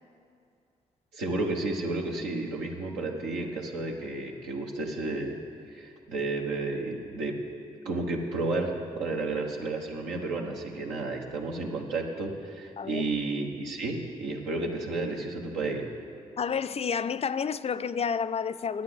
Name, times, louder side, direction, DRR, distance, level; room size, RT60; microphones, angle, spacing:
voice 1, 1.1-5.4 5.7-7.4 7.8-15.9, right 2 dB, 85° right, 1.2 m, -32 dB
voice 2, 12.8-13.1 16.4-18.8, left 6 dB, 40° left, 0.4 m, -30 dB
9.9 x 8.7 x 7.8 m
hypercardioid pair, 40°, 17 cm